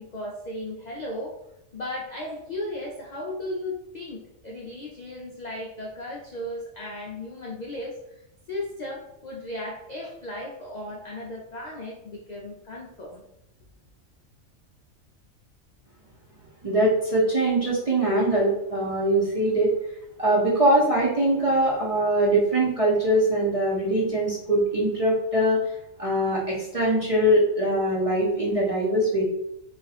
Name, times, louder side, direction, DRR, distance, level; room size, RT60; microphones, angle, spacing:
voice 1, 0.0-1.4 1.7-8.0 8.5-13.2, left 1 dB, 65° left, -2 dB, 0.4 m, -35 dB
voice 2, 16.6-19.7 20.2-25.6 26.0-29.2, right 1 dB, 40° right, -6 dB, 0.5 m, -22 dB
2.6 x 2.4 x 4.0 m, 0.81 s
omnidirectional pair, 1.4 m